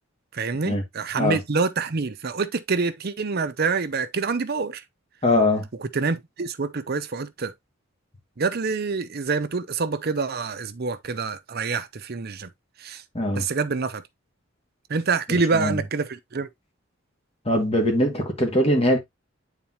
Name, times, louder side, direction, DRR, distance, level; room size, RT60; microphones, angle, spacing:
voice 1, 0.3-4.8 5.8-7.5 8.4-12.5 12.8-13.0 13.4-14.0 14.9-16.5, right 4 dB, 50° right, 0.7 m, -26 dB
voice 2, 5.2-5.7 13.1-13.4 15.3-15.8 17.5-19.0, left 1 dB, 30° left, 2.1 m, -22 dB
8.8 x 4.2 x 2.8 m
head